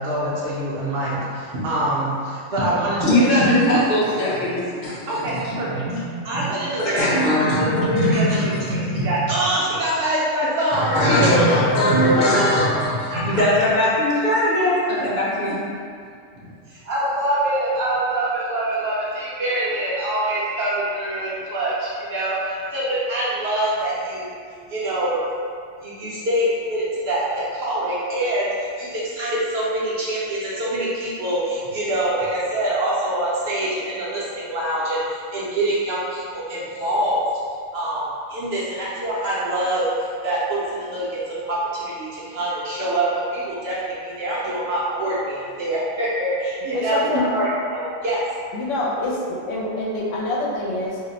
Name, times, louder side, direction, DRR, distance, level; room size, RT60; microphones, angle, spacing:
voice 1, 0.0-3.7 5.1-12.2 13.1-13.4 16.3-16.4 16.7-24.3 24.7-25.2 25.8-37.2 37.7-48.2, right 1 dB, 65° right, -8 dB, 0.7 m, -24 dB
voice 2, 3.1-5.6 5.9-6.0 6.8-7.8 8.3-8.4 10.7-15.6, left 1 dB, 50° left, -7 dB, 0.6 m, -20 dB
voice 3, 11.1-12.1 46.7-47.2 48.5-51.0, left 2 dB, 75° left, -4 dB, 0.9 m, -27 dB
2.5 x 2.1 x 3.8 m, 2.2 s
omnidirectional pair, 1.3 m